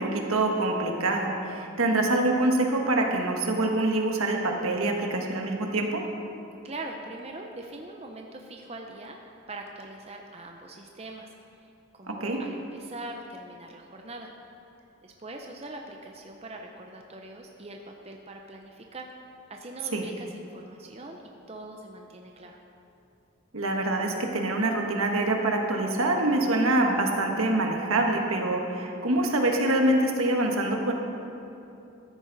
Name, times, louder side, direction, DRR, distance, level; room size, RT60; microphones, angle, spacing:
voice 1, 0.0-6.0 12.1-12.4 19.9-20.0 23.5-30.9, right 2 dB, 80° right, 2 dB, 1.4 m, -25 dB
voice 2, 6.6-11.7 11.9-14.3 15.0-19.1 19.5-21.2 21.5-22.6, right 2 dB, 30° right, 2 dB, 0.6 m, -42 dB
14.0 x 10.5 x 4.0 m, 2.9 s
head